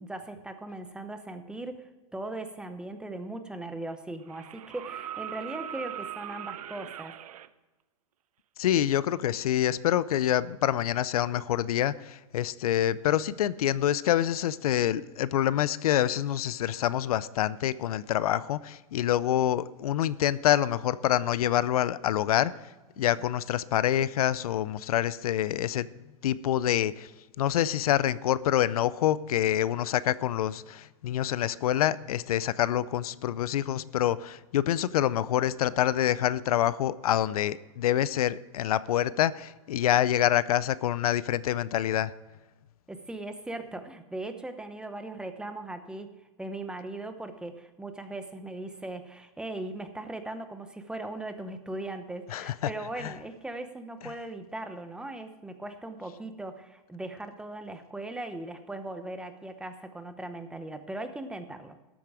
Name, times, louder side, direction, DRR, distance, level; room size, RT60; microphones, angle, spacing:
voice 1, 0.0-7.1 42.9-46.1 46.4-61.7, right 2 dB, 5° right, 8 dB, 0.8 m, -39 dB
sound 1, 3.1-3.2 4.3-7.5 9.2-9.3, right 11 dB, 85° right, 0.6 m, -40 dB
voice 2, 8.6-22.5 23.0-25.9 26.2-27.1 27.4-42.1 52.3-52.7 53.0-53.1 54.0-54.1, left 11 dB, 85° left, 18 dB, 0.5 m, -26 dB
12.5 x 8.5 x 4.8 m, 1.2 s
supercardioid pair, 140°, 18 cm